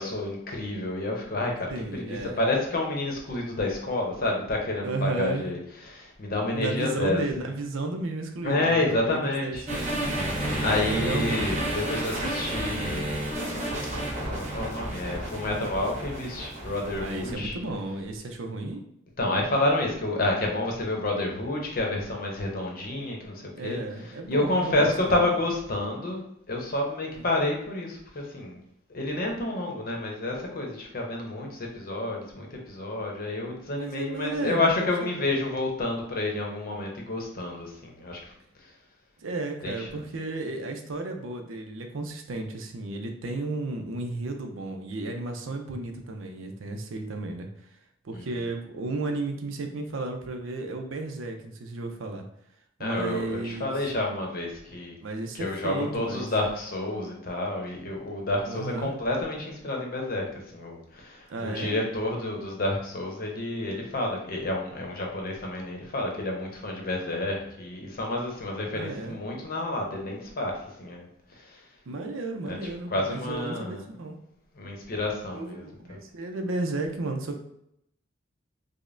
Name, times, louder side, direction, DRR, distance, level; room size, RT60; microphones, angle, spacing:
voice 1, 0.0-5.6 5.8-7.2 8.4-9.6 10.6-13.1 14.3-17.5 19.2-23.8 24.3-28.6 28.9-38.3 38.6-38.7 39.6-40.0 48.1-48.2 52.8-54.9 55.3-71.6 72.5-72.6 72.9-73.9 74.5-76.0, left 2 dB, 50° left, 0 dB, 0.8 m, -29 dB
voice 2, 1.7-2.4 4.8-5.5 6.3-10.2 10.8-11.6 17.0-18.8 23.5-25.2 27.0-27.3 33.7-35.3 39.2-47.5 48.0-52.2 52.8-53.7 55.0-56.3 58.5-58.9 61.3-61.8 68.7-69.2 71.9-74.2 75.3-77.4, right 2 dB, 75° right, 5 dB, 0.5 m, -33 dB
sound 1, 9.7-17.3, right 1 dB, 35° right, 0.9 m, -31 dB
5.0 x 2.1 x 2.5 m, 0.76 s
head